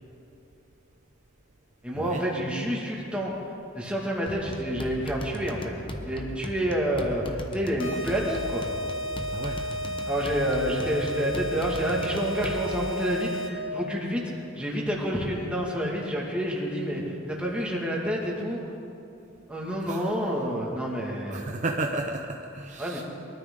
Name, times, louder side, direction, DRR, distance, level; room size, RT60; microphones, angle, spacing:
voice 1, 1.8-5.7 6.0-8.6 10.1-18.6 19.5-21.4 22.8-23.0, equal, 5° right, -3 dB, 2.2 m, -29 dB
sound 1, 4.3-13.0, equal, 25° left, 1.0 m, -38 dB
sound 2, 7.8-13.8, equal, 75° left, 1.6 m, -33 dB
voice 2, 21.3-23.0, right 2 dB, 35° right, 2 dB, 0.6 m, -32 dB
22.5 x 13.0 x 3.9 m, 2.8 s
head